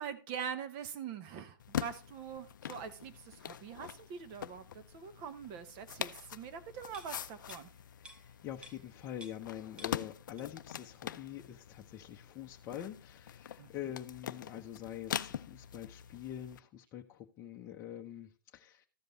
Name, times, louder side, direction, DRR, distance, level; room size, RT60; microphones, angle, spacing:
voice 1, 0.0-7.7 13.6-13.7, right 7 dB, 35° right, 1.0 m, -43 dB
sound 1, 1.6-16.6, left 9 dB, 65° left, 0.5 m, -44 dB
sound 2, 6.9-9.5 9.8-10.7 11.1-11.2, right 1 dB, 10° right, 0.8 m, -56 dB
voice 2, 8.0-18.9, left 11 dB, 25° left, 0.8 m, -45 dB
14.0 x 5.2 x 3.9 m
hypercardioid pair, 130°, 11 cm